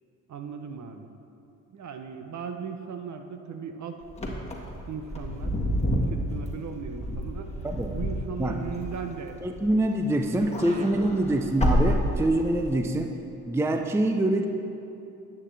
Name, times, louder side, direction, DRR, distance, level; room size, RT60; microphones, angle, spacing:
voice 1, 0.3-1.1 1.7-4.0 4.9-5.6 6.1-7.5 7.9-9.4 10.4-11.3, right 6 dB, 45° right, 6 dB, 0.8 m, -37 dB
Wind / Car, 4.1-9.9 10.3-12.7, equal, 15° left, 1.6 m, -29 dB
voice 2, 9.4-13.1 13.5-14.5, right 1 dB, 5° right, 5 dB, 0.5 m, -25 dB
9.9 x 8.4 x 3.4 m, 2.8 s
supercardioid pair, 65°, 40 cm